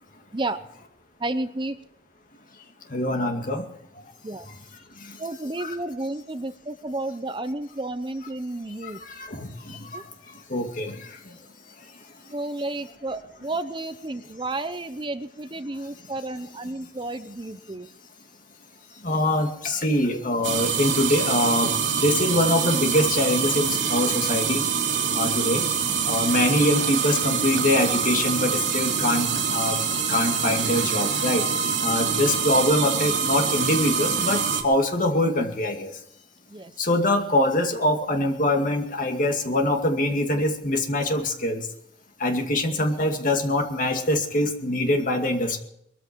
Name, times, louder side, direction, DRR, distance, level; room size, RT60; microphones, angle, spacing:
voice 1, 1.2-1.8 4.2-4.5 5.2-9.0 9.9-10.0 12.3-17.9 36.5-36.7, right 2 dB, 25° right, 11 dB, 0.7 m, -31 dB
voice 2, 2.9-3.6 5.0-5.2 5.6-5.8 8.8-10.1 10.5-11.4 19.0-24.7 25.1-25.7 26.1-29.8 30.1-31.5 31.8-35.9 36.8-41.7 42.2-45.6, left 1 dB, 45° left, 4 dB, 2.3 m, -24 dB
sound 1, 20.4-34.6, right 6 dB, 80° right, 3.0 m, -25 dB
21.5 x 14.0 x 4.7 m, 0.74 s
head